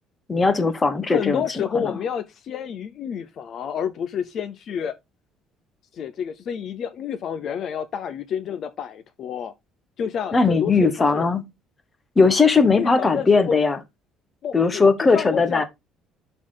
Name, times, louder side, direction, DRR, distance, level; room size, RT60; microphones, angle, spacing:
voice 1, 0.3-1.9 10.3-11.4 12.2-13.8 14.5-15.6, left 4 dB, 15° left, 1.0 m, -19 dB
voice 2, 1.1-4.9 5.9-9.5 10.0-11.3 12.8-13.6 14.4-15.6, left 7 dB, 40° left, 0.7 m, -29 dB
11.5 x 4.0 x 3.9 m
cardioid pair, 175°, 0 cm